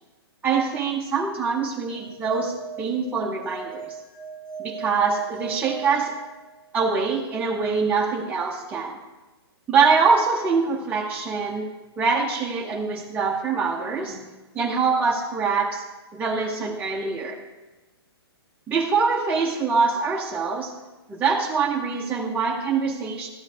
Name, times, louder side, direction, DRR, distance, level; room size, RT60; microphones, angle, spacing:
voice 1, 0.4-4.0 4.6-6.1 6.7-8.9 9.7-11.7 12.0-14.3 14.5-15.8 16.1-17.4 18.7-20.7 21.1-23.3, right 5 dB, 10° right, -3 dB, 0.8 m, -24 dB
sound 1, 2.0-6.8, right 8 dB, 5° left, 1.3 m, -38 dB
13.0 x 8.8 x 2.8 m, 1.1 s
hypercardioid pair, 135°, 13 cm